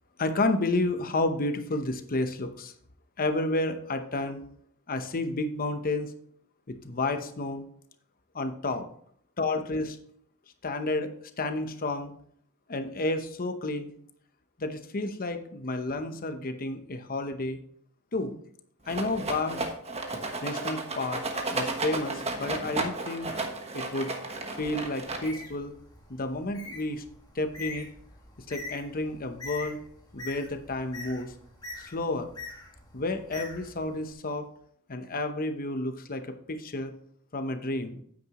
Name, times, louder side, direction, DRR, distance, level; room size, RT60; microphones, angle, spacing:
voice 1, 0.2-2.7 3.2-4.4 4.9-6.1 6.7-7.6 8.3-8.9 9.4-10.0 10.6-12.1 12.7-13.9 14.6-17.6 18.1-18.4 18.9-19.6 20.4-21.2 21.5-23.3 23.7-24.2 24.6-25.8 26.1-27.0 27.3-27.9 28.5-29.8 30.1-31.3 31.8-32.3 32.9-34.5 34.9-36.9 37.3-38.0, left 2 dB, 40° left, 8 dB, 0.9 m, -31 dB
Rattle, 18.9-25.6, right 3 dB, 30° right, 1.2 m, -33 dB
Bird, 25.0-34.1, left 3 dB, 20° left, 1.9 m, -44 dB
9.4 x 8.9 x 3.0 m, 0.64 s
head